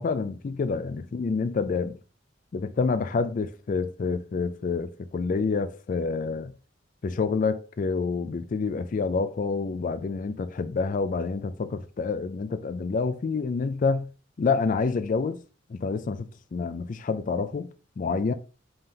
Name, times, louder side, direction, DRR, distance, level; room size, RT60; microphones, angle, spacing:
voice 1, 0.0-2.0 2.5-6.5 7.0-14.1 14.4-15.4 15.7-17.7 18.0-18.3, left 4 dB, 45° left, 0.3 m, -28 dB
5.4 x 2.8 x 3.5 m
head